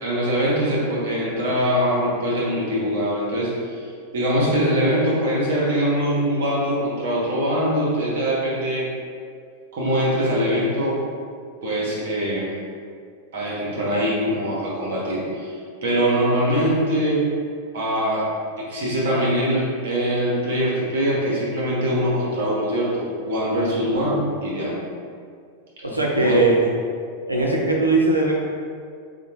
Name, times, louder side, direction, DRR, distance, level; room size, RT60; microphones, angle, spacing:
voice 1, 0.0-3.8 4.1-8.9 9.7-11.0 11.6-12.5 13.3-15.6 15.8-17.2 17.7-18.3 18.6-24.8 26.2-26.4, equal, 55° right, -5 dB, 1.0 m, -22 dB
voice 2, 25.8-26.7 27.3-28.3, right 2 dB, 85° right, -2 dB, 0.6 m, -20 dB
4.8 x 2.2 x 2.8 m, 2.2 s
figure-of-eight pair, 90°, 0 cm